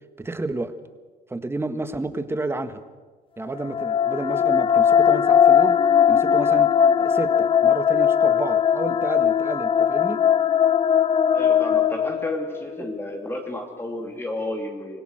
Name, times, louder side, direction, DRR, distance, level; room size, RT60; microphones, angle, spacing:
voice 1, 0.2-0.7 1.3-2.8 3.4-5.8 6.1-10.2 12.8-12.9, right 2 dB, 15° right, 9 dB, 1.6 m, -30 dB
sound 1, 3.5-12.8, left 8 dB, 30° left, 0.5 m, -19 dB
voice 2, 11.3-15.0, left 1 dB, 15° left, 2 dB, 2.8 m, -32 dB
25.5 x 17.0 x 6.5 m, 1.4 s
cardioid pair, 110°, 17 cm